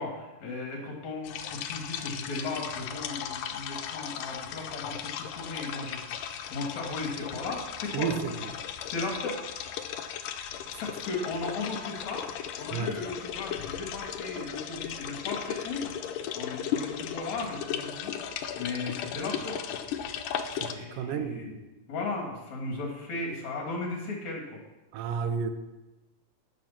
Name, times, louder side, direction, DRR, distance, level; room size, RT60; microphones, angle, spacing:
voice 1, 0.0-8.4 8.8-9.4 10.7-12.3 12.6-15.9 16.3-18.1 18.6-19.8 20.7-21.6 21.9-24.6, left 3 dB, 60° left, 3.6 m, -36 dB
sound 1, 1.2-20.7, left 9 dB, 85° left, 2.3 m, -36 dB
voice 2, 7.9-8.3 12.7-13.0 20.6-21.6 24.9-25.5, right 6 dB, 80° right, 2.4 m, -31 dB
12.5 x 6.7 x 5.9 m
omnidirectional pair, 3.7 m